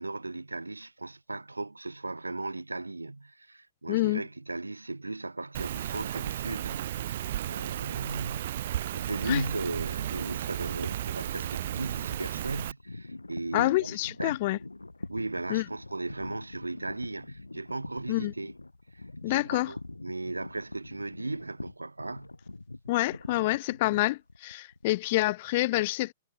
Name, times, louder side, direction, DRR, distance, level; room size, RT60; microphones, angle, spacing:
voice 1, 0.0-8.5 8.9-13.9 14.2-14.4 15.1-18.5 18.9-22.3, right 2 dB, 80° right, 1.0 m, -37 dB
voice 2, 3.9-4.2 9.3-9.4 13.5-14.6 15.5-15.6 18.1-18.3 19.2-19.7 22.9-26.1, left 19 dB, 45° left, 0.6 m, -27 dB
Rain, 5.5-12.7, right 12 dB, 50° right, 0.3 m, -34 dB
sound 1, 10.8-24.9, left 2 dB, 80° left, 7.1 m, -44 dB
figure-of-eight pair, 110°, 0 cm